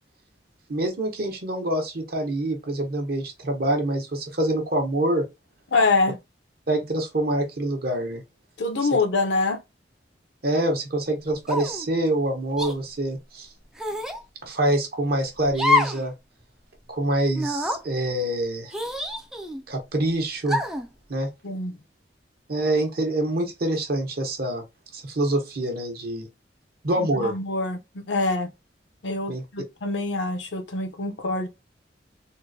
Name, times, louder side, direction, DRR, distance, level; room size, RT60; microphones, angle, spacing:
voice 1, 0.7-5.2 6.7-8.2 10.4-13.5 14.4-16.1 16.9-18.7 19.7-20.6 21.1-21.3 22.5-24.6 24.9-26.3 26.8-27.3 29.3-29.4, right 1 dB, 55° right, 0.9 m, -25 dB
voice 2, 5.7-6.2 8.6-9.6 21.4-21.7 27.0-28.5 29.0-31.5, left 3 dB, 80° left, 0.7 m, -25 dB
sound 1, 11.5-11.9 12.6-12.7 13.8-14.2 15.5-16.0 16.4-16.5 17.3-17.8 18.7-19.6 20.5-20.9, left 2 dB, 5° right, 0.3 m, -26 dB
3.7 x 2.1 x 2.6 m
head